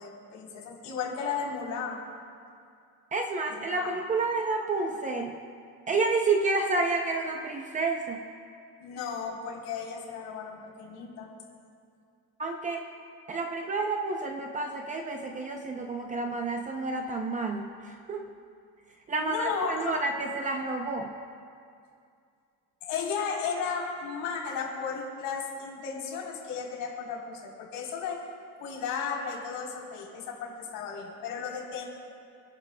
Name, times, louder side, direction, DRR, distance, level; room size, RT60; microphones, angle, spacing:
voice 1, 0.0-2.1 3.5-3.9 8.8-11.3 19.2-19.9 22.8-28.2 28.6-31.9, left 6 dB, 55° left, -2 dB, 3.7 m, -34 dB
voice 2, 3.1-5.4 5.9-8.2 12.4-12.9 13.3-18.2 19.1-21.1, right 3 dB, 20° right, 3 dB, 0.5 m, -30 dB
29.0 x 11.0 x 2.2 m, 2.3 s
cardioid pair, 170°, 38 cm